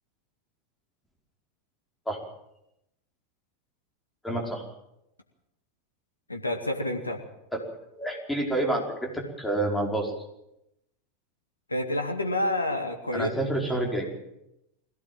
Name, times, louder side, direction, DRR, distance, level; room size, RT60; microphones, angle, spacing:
voice 1, 4.2-4.6 7.5-7.6 7.9-10.1 13.1-14.1, right 1 dB, 5° left, 1 dB, 5.1 m, -28 dB
voice 2, 6.3-7.2 11.7-13.6, left 1 dB, 85° left, 4 dB, 2.3 m, -29 dB
21.5 x 17.0 x 7.6 m, 0.85 s
figure-of-eight pair, 85°, 0 cm